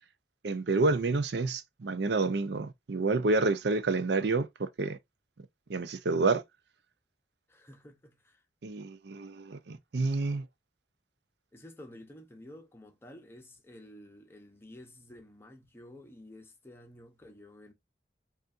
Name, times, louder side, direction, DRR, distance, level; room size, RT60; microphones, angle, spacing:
voice 1, 0.4-5.0 5.7-6.4 8.6-10.4, right 3 dB, 70° right, 0.5 m, -29 dB
voice 2, 7.5-8.4 11.5-17.7, left 1 dB, 15° left, 0.8 m, -51 dB
5.2 x 2.5 x 2.5 m
head